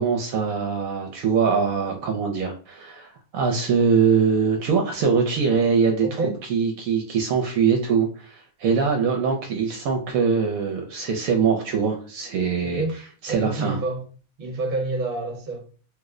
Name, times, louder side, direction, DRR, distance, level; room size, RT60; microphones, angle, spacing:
voice 1, 0.0-6.1 6.5-12.8 13.2-13.8, right 6 dB, 75° right, 1.0 m, -22 dB
voice 2, 6.0-6.4 12.6-13.0 13.3-14.0 14.4-15.7, right 3 dB, 45° right, 1.0 m, -28 dB
3.0 x 2.0 x 3.6 m
omnidirectional pair, 1.5 m